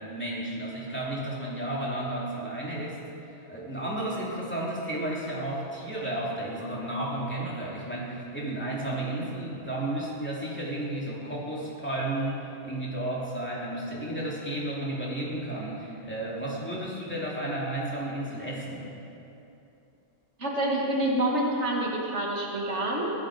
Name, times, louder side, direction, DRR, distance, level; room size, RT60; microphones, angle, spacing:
voice 1, 0.0-18.9, right 1 dB, 10° left, -6 dB, 2.9 m, -33 dB
voice 2, 20.4-23.1, right 1 dB, 85° right, -2 dB, 2.4 m, -27 dB
16.5 x 12.0 x 5.1 m, 2.8 s
omnidirectional pair, 1.2 m